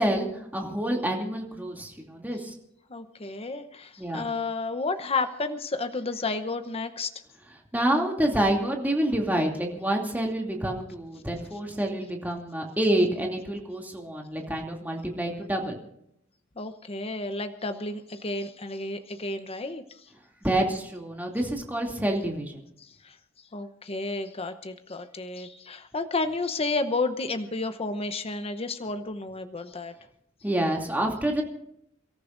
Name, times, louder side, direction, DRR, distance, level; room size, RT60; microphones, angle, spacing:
voice 1, 0.0-2.5 4.0-4.3 7.7-15.8 20.4-22.6 30.4-31.4, right 1 dB, 10° right, 0 dB, 2.7 m, -27 dB
voice 2, 2.9-7.1 16.6-20.0 22.8-23.2 23.5-29.9, left 3 dB, 30° left, 9 dB, 0.9 m, -31 dB
29.5 x 14.0 x 2.6 m, 0.77 s
head